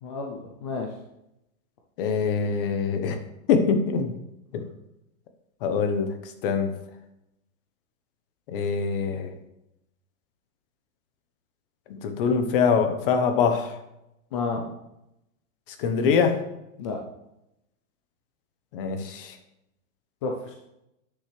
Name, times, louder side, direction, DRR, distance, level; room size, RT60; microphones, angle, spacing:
voice 1, 0.0-0.9 14.3-14.6 16.8-17.0 20.2-20.5, left 4 dB, 25° left, 1 dB, 0.4 m, -31 dB
voice 2, 2.0-3.2 3.5-4.1 4.5-4.6 5.6-6.7 8.5-9.3 12.0-13.8 15.8-16.4 18.7-19.4, left 6 dB, 40° left, 8 dB, 1.0 m, -24 dB
9.4 x 6.7 x 3.2 m, 0.86 s
supercardioid pair, 165°, 42 cm